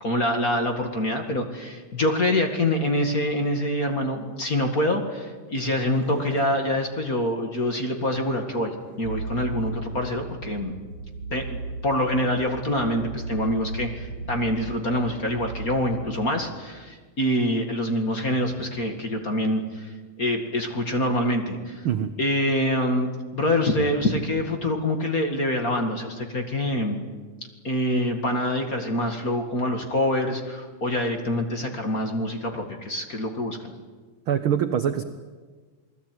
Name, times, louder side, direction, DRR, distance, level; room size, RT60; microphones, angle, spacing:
voice 1, 0.0-10.7 11.3-21.9 22.2-23.1 23.3-27.0 27.6-33.7, left 1 dB, 30° left, 4 dB, 2.1 m, -25 dB
sound 1, 5.2-7.3 8.3-9.2 9.7-10.1 10.4-10.5 10.8-10.9, right 1 dB, 20° right, 6.4 m, -45 dB
sound 2, 9.0-16.1, right 3 dB, 45° right, 7.7 m, -35 dB
voice 2, 34.3-35.0, right 9 dB, 65° right, 9 dB, 1.3 m, -23 dB
28.5 x 19.5 x 9.4 m, 1.4 s
omnidirectional pair, 3.7 m